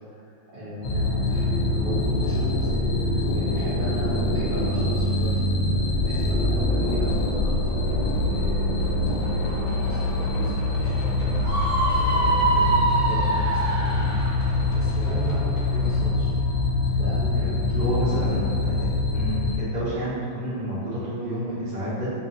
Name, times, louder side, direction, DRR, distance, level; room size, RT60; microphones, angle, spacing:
voice 1, 0.2-2.7 3.0-5.6 6.0-11.3 11.7-16.3 17.0-18.3 19.5-19.7, equal, 65° right, -11 dB, 1.2 m, -35 dB
sound 1, 0.8-19.5, left 2 dB, 75° left, 1.1 m, -24 dB
Screaming, 11.4-14.4, right 2 dB, 5° right, 0.8 m, -24 dB
voice 2, 17.8-18.9 19.1-22.1, equal, 25° right, -12 dB, 1.0 m, -29 dB
4.4 x 2.5 x 2.5 m, 2.4 s
omnidirectional pair, 2.2 m